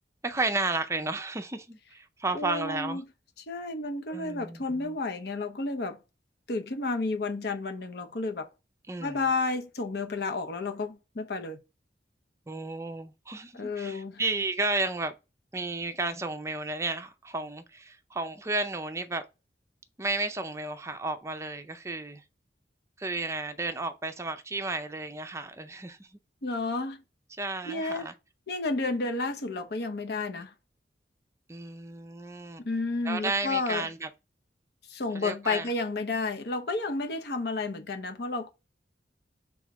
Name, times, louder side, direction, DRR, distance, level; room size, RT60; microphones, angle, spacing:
voice 1, 0.2-3.0 4.1-5.0 8.9-9.3 12.5-15.1 15.5-19.2 20.0-22.2 23.0-26.1 27.4-28.1 31.5-32.7 33.0-34.1 35.1-35.7, right 3 dB, 15° right, 0.5 m, -33 dB
voice 2, 2.3-3.0 3.5-6.0 6.5-8.5 9.0-11.6 13.5-14.2 26.4-27.0 27.7-28.1 28.5-30.5 32.6-33.9 34.9-38.5, left 3 dB, 60° left, 0.7 m, -31 dB
3.6 x 3.1 x 4.7 m
head